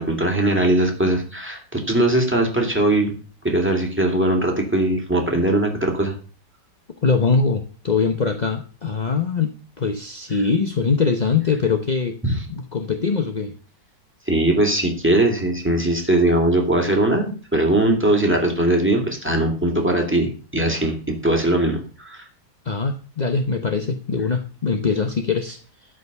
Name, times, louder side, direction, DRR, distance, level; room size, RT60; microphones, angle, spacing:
voice 1, 0.0-3.2 3.4-6.1 12.2-12.4 14.3-22.2, right 1 dB, 5° right, 1 dB, 2.5 m, -20 dB
voice 2, 7.0-12.2 12.5-13.5 22.6-25.6, left 5 dB, 40° left, 6 dB, 0.6 m, -22 dB
13.0 x 5.2 x 6.7 m, 0.38 s
omnidirectional pair, 1.9 m